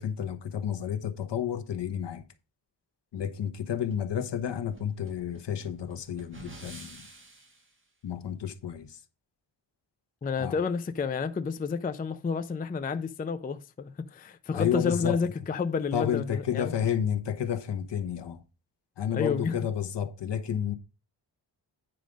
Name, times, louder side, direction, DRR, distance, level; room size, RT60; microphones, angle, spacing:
voice 1, 0.0-2.2 3.1-7.1 8.0-9.0 10.4-10.6 14.5-15.2 15.9-18.4 19.0-20.7, left 9 dB, 65° left, 1.1 m, -31 dB
sound 1, 3.8-7.7, right 2 dB, 25° right, 1.6 m, -49 dB
voice 2, 10.2-16.7 19.1-19.5, left 5 dB, 20° left, 0.4 m, -30 dB
9.3 x 5.0 x 5.1 m
wide cardioid pair, 175°, 45 cm